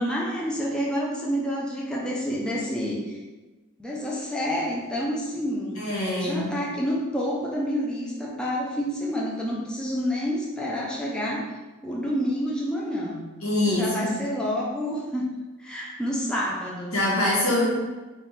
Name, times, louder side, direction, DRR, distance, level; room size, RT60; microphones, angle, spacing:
voice 1, 0.0-3.2 3.8-5.8 6.1-11.5 11.8-13.3 13.6-15.3 15.6-16.9, equal, 5° left, -5 dB, 0.5 m, -28 dB
voice 2, 5.8-6.5 13.4-14.2 16.9-17.7, left 1 dB, 85° left, -5 dB, 1.3 m, -24 dB
3.5 x 2.4 x 4.2 m, 1.2 s
head